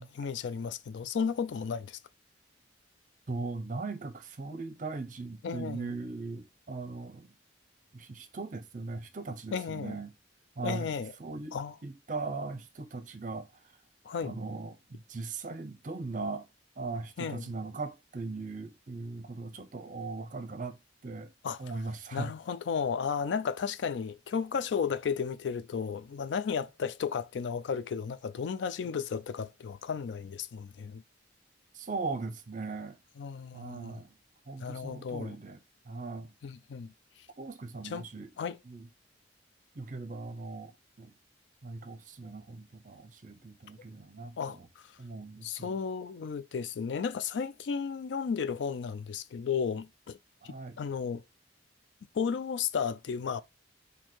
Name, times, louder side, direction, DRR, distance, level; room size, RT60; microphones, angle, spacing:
voice 1, 0.0-2.0 5.4-5.9 9.5-10.0 10.6-11.1 11.5-11.8 14.0-14.3 17.2-17.5 21.4-21.7 22.1-31.0 33.2-34.0 34.6-35.4 36.4-36.9 37.8-38.1 38.4-38.6 44.4-44.8 45.4-50.2 50.4-51.2 52.1-53.4, left 6 dB, 70° left, 0.3 m, -34 dB
voice 2, 3.3-7.3 7.9-10.1 10.6-10.9 11.2-13.5 14.2-16.5 16.8-20.8 21.0-21.3 21.6-22.3 31.7-33.0 33.5-34.1 34.5-35.6 35.9-36.3 37.4-38.3 38.6-38.9 39.8-41.1 41.6-44.7 45.0-45.8 50.4-50.8, right 3 dB, 40° right, 0.6 m, -39 dB
4.4 x 2.7 x 4.4 m
head